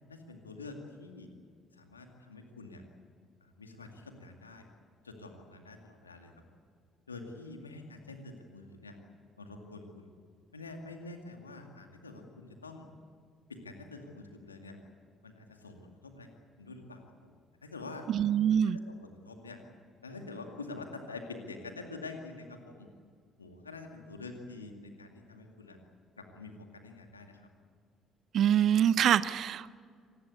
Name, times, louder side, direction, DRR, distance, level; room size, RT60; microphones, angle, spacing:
voice 1, 0.1-1.3 1.7-2.8 3.4-4.7 5.0-6.3 7.1-9.0 9.4-10.1 10.5-12.9 13.5-14.8 15.2-16.3 16.6-18.1 18.5-19.6 20.0-22.9 23.4-25.8 26.2-27.5, left 3 dB, 90° left, 4 dB, 2.2 m, -46 dB
voice 2, 18.1-18.8 28.3-29.8, right 9 dB, 55° right, 18 dB, 0.6 m, -25 dB
25.5 x 19.0 x 8.4 m, 2.1 s
figure-of-eight pair, 50°, 0 cm